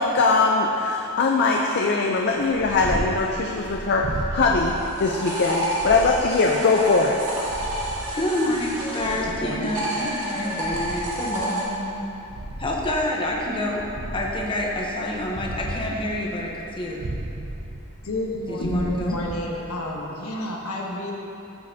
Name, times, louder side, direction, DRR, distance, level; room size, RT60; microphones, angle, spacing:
voice 1, 0.0-7.2, left 3 dB, 50° left, 0 dB, 0.5 m, -21 dB
Purr, 2.3-20.0, right 1 dB, 50° right, 0.6 m, -36 dB
sound 1, 4.7-9.3 9.6-11.6, right 1 dB, 85° right, 2.0 m, -30 dB
voice 2, 8.1-12.1 12.6-13.9 14.1-17.0 18.5-19.1, left 1 dB, 25° left, -2 dB, 0.9 m, -28 dB
voice 3, 9.0-10.3 18.0-21.1, left 1 dB, 85° left, -2 dB, 1.2 m, -30 dB
13.5 x 6.5 x 2.8 m, 2.9 s
head